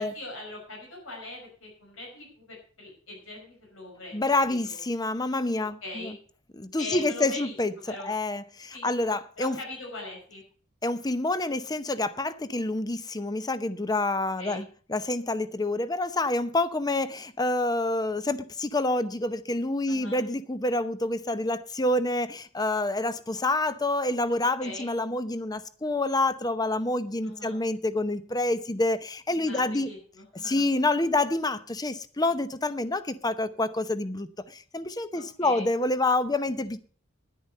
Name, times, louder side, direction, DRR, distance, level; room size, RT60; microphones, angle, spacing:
voice 1, 0.0-4.8 5.8-6.1 6.8-7.5 7.9-8.1 8.7-8.9 9.4-10.4 14.4-14.6 19.9-20.2 24.6-24.9 27.2-27.6 29.5-30.7 35.1-35.7, left 2 dB, 80° left, 5.5 m, -41 dB
voice 2, 4.1-6.2 6.5-9.6 10.8-29.9 30.4-36.8, left 2 dB, 20° left, 0.8 m, -27 dB
10.5 x 10.0 x 6.6 m
head